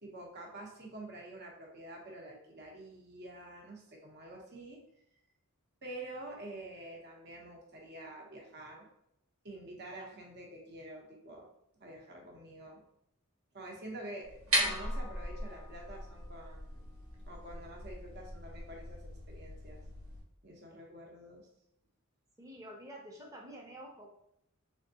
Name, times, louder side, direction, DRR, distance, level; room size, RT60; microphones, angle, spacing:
voice 1, 0.0-4.8 5.8-8.9 9.4-11.5 11.8-12.8 13.5-16.8 17.2-19.8 20.4-21.4, right 1 dB, 50° right, 0 dB, 0.9 m, -47 dB
sound 1, 14.2-20.2, right 1 dB, 80° right, 1.4 m, -38 dB
voice 2, 22.4-24.1, equal, 15° right, 0 dB, 0.8 m, -48 dB
3.5 x 3.4 x 2.8 m, 0.77 s
head